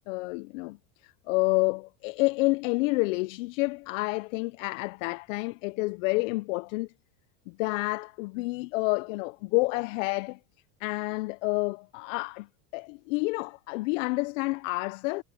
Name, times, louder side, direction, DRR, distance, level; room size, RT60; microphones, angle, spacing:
voice 1, 0.1-0.8 1.0-6.9 7.5-10.4 10.8-12.5 12.7-15.2, left 25 dB, 60° left, 0.7 m, -29 dB
supercardioid pair, 130°, 43 cm